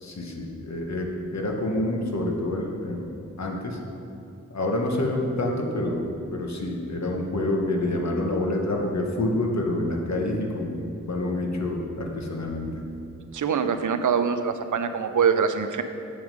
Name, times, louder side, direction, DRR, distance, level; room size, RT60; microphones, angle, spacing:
voice 1, 0.0-3.8 4.5-12.7, left 1 dB, 60° left, 1 dB, 1.1 m, -27 dB
voice 2, 13.3-15.8, right 6 dB, 75° right, 9 dB, 0.5 m, -24 dB
7.5 x 6.0 x 5.2 m, 2.6 s
wide cardioid pair, 85°, 31 cm